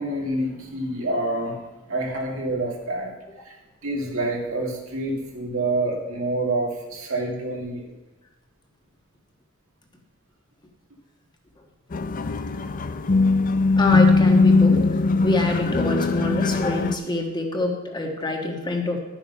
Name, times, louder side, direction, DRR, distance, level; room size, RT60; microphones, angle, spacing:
voice 1, 0.0-1.6 1.9-3.1 3.5-3.6 3.8-7.9, right 2 dB, 80° right, -1 dB, 2.3 m, -27 dB
sound 1, 11.9-16.9, left 3 dB, 40° left, 0.5 m, -20 dB
voice 2, 13.8-14.8 15.2-19.0, left 2 dB, 20° left, 2 dB, 1.4 m, -25 dB
12.0 x 7.2 x 5.6 m, 1.1 s
head